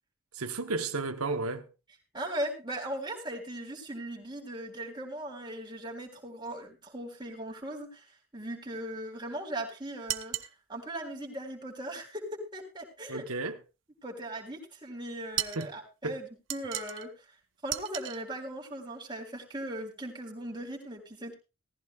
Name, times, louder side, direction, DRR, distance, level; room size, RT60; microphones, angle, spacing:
voice 1, 0.3-1.7 13.1-13.6 15.6-15.7 16.0-16.2, right 3 dB, 90° right, 1.1 m, -33 dB
voice 2, 2.1-10.3 10.7-13.2 14.0-17.1 17.6-21.3, right 1 dB, 20° right, 3.5 m, -38 dB
sound 1, 10.1-10.5 15.4-15.7 16.5-17.1 17.7-18.2, right 13 dB, 60° right, 0.9 m, -35 dB
18.0 x 14.5 x 2.4 m
head